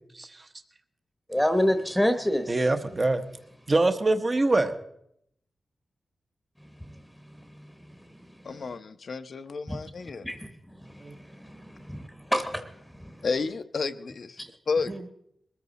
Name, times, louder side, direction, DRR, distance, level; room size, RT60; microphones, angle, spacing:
voice 1, 0.1-0.5 2.5-3.2 3.7-4.7 11.0-11.1 14.9-15.0, right 2 dB, 30° right, 8 dB, 1.0 m, -24 dB
voice 2, 1.3-2.4 9.7-9.8 10.2-10.5 11.5-11.6 11.9-12.1 12.3-12.6 13.0-13.1, equal, 5° left, 7 dB, 1.1 m, -25 dB
voice 3, 8.4-10.3 13.2-14.4 14.7-14.9, left 4 dB, 60° left, 9 dB, 0.8 m, -31 dB
21.5 x 14.0 x 4.1 m, 0.74 s
wide cardioid pair, 125°, 0 cm